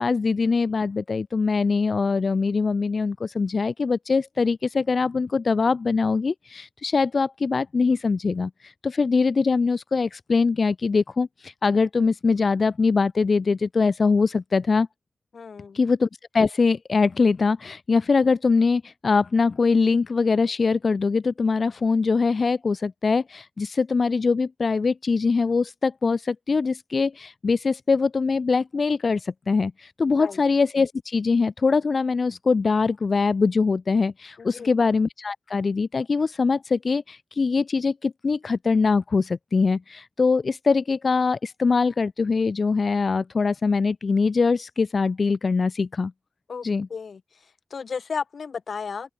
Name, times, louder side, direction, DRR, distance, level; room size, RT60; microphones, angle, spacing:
voice 1, 0.0-14.9 15.7-46.1 46.6-46.9, left 4 dB, 65° left, 0.6 m, -23 dB
voice 2, 15.3-15.8 30.2-30.4 34.4-34.7 46.5-46.6 46.9-47.2 47.7-49.1, left 5 dB, 80° left, 1.2 m, -33 dB
open air
cardioid pair, 50°, 0 cm